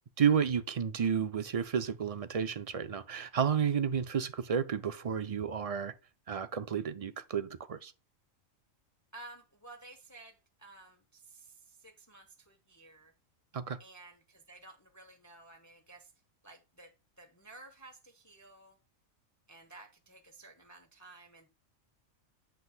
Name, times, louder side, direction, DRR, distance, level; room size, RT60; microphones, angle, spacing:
voice 1, 0.2-5.9 6.3-7.9 13.5-13.8, right 7 dB, 65° right, 0.3 m, -31 dB
voice 2, 9.1-13.1 13.8-16.1 16.4-18.8 19.5-21.5, right 2 dB, 15° left, 0.8 m, -54 dB
8.2 x 7.7 x 2.2 m
omnidirectional pair, 1.4 m